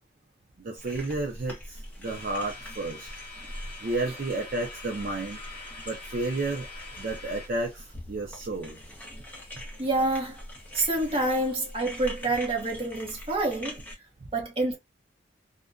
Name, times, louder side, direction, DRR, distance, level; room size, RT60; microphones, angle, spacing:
voice 1, 0.6-3.1 3.8-5.4 5.9-6.7 7.0-8.8, right 2 dB, 45° right, 0.5 m, -32 dB
sound 1, 0.8-13.9, left 1 dB, 10° left, 0.7 m, -43 dB
sound 2, 2.0-7.5, left 3 dB, 30° left, 1.0 m, -44 dB
voice 2, 9.8-10.4 10.7-13.8 14.3-14.8, right 2 dB, 30° right, 0.9 m, -27 dB
2.5 x 2.1 x 2.3 m
head